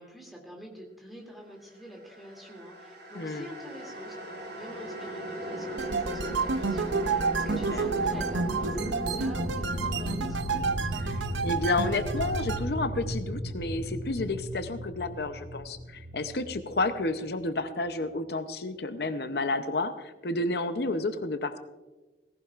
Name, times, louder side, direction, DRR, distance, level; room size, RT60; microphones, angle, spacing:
voice 1, 0.0-10.7, equal, ahead, -1 dB, 2.6 m, -46 dB
sound 1, 2.1-17.3, equal, 65° right, 4.9 m, -36 dB
voice 2, 3.2-3.5 7.7-7.9 11.0-21.6, left 2 dB, 60° left, 9 dB, 0.7 m, -31 dB
sound 2, 5.8-12.6, right 4 dB, 85° right, 0.7 m, -30 dB
18.0 x 16.0 x 2.5 m, 1.2 s
head